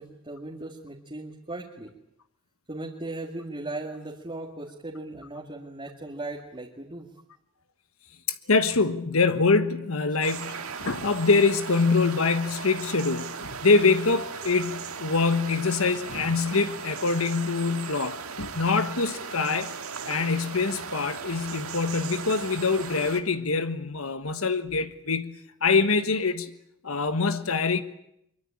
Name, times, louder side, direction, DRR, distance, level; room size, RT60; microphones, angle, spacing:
voice 1, 0.0-1.9 2.7-7.1, right 2 dB, 25° right, 2.3 m, -37 dB
voice 2, 8.5-19.7 20.1-25.3 25.6-26.5 26.8-27.8, left 4 dB, 75° left, 1.4 m, -24 dB
sound 1, 10.2-23.2, right 5 dB, 80° right, 2.1 m, -37 dB
24.0 x 23.5 x 8.7 m
head